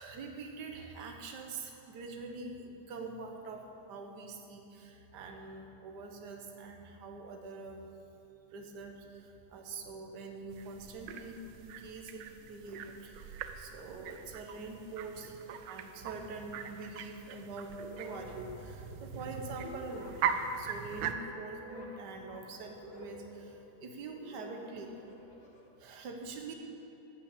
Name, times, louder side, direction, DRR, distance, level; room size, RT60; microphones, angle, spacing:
voice 1, 0.0-7.8 8.5-20.1 20.6-25.0 25.8-26.5, right 3 dB, 70° right, 3 dB, 1.6 m, -45 dB
sound 1, 10.5-21.1, right 7 dB, 90° right, 1.3 m, -41 dB
sound 2, 17.7-25.7, left 2 dB, 40° left, 1.7 m, -51 dB
14.0 x 5.9 x 8.2 m, 3.0 s
omnidirectional pair, 1.9 m